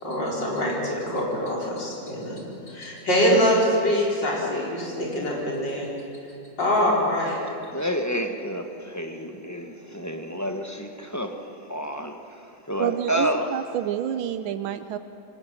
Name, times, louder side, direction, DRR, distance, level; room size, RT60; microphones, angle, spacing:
voice 1, 0.0-2.4 2.7-5.9 6.6-7.4, equal, 65° left, -4 dB, 5.3 m, -24 dB
voice 2, 7.7-13.6, equal, 15° left, 5 dB, 0.8 m, -30 dB
voice 3, 12.8-15.0, right 10 dB, 85° right, 11 dB, 1.5 m, -28 dB
25.0 x 18.5 x 7.5 m, 2.6 s
omnidirectional pair, 2.1 m